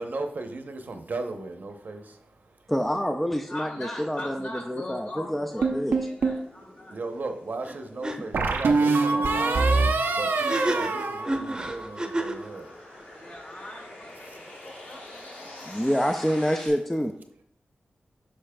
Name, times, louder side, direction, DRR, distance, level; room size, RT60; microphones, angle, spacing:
voice 1, 0.0-2.5 6.9-9.6 10.1-13.0 14.2-14.4, right 3 dB, 60° right, 0.8 m, -36 dB
voice 2, 2.7-6.0 8.2-8.3 15.7-17.2, equal, 5° left, 0.4 m, -27 dB
voice 3, 3.5-7.0 13.1-15.7, left 1 dB, 60° left, 2.9 m, -41 dB
sound 1, 3.7-16.7, left 1 dB, 85° left, 2.4 m, -47 dB
sound 2, 5.6-6.5 8.3-12.0, right 3 dB, 90° right, 0.6 m, -24 dB
sound 3, 7.6-7.8 8.0-8.2 10.3-12.5, right 1 dB, 25° right, 0.8 m, -30 dB
8.6 x 6.2 x 2.3 m
wide cardioid pair, 70°, 3 cm